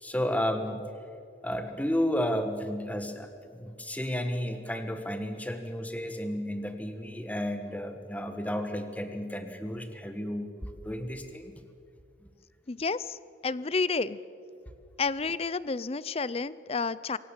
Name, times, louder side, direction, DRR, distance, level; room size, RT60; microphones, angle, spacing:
voice 1, 0.0-0.8 1.4-11.5, equal, 10° left, 7 dB, 1.5 m, -32 dB
voice 2, 12.7-13.2 13.4-14.2 15.0-17.2, left 4 dB, 35° left, 18 dB, 0.5 m, -30 dB
27.0 x 17.0 x 7.4 m, 2.4 s
head